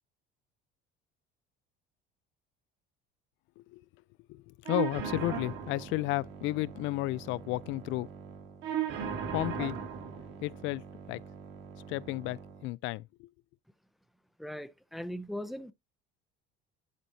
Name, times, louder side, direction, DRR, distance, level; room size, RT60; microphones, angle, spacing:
voice 1, 4.3-8.1 9.3-9.8 10.4-10.8 11.1-11.2 11.9-13.3, left 20 dB, 70° left, 0.4 m, -33 dB
sound 1, 4.6-12.6, right 8 dB, 65° right, 2.4 m, -39 dB
voice 2, 14.4-15.7, equal, ahead, 0.5 m, -39 dB
11.0 x 4.2 x 2.8 m
cardioid pair, 135°, 21 cm